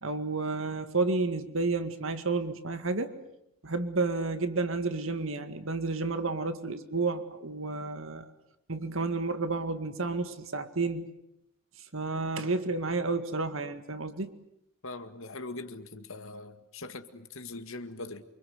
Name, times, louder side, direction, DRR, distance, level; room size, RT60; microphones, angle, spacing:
voice 1, 0.0-3.1 3.6-8.2 8.7-11.1 11.9-14.3, right 3 dB, 65° right, 2.0 m, -31 dB
voice 2, 14.8-18.2, left 2 dB, 65° left, 2.0 m, -41 dB
28.0 x 25.5 x 8.1 m
head